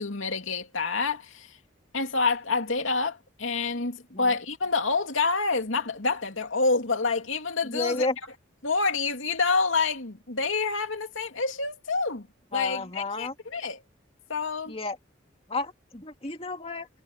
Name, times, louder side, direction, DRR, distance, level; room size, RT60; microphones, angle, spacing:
voice 1, 0.0-1.5 1.9-8.1 8.6-12.3 12.5-13.8 14.3-14.8, left 4 dB, 80° left, 2.7 m, -27 dB
voice 2, 7.6-8.1 12.5-13.3 14.7-15.0 15.5-16.9, left 2 dB, 30° left, 2.4 m, -31 dB
head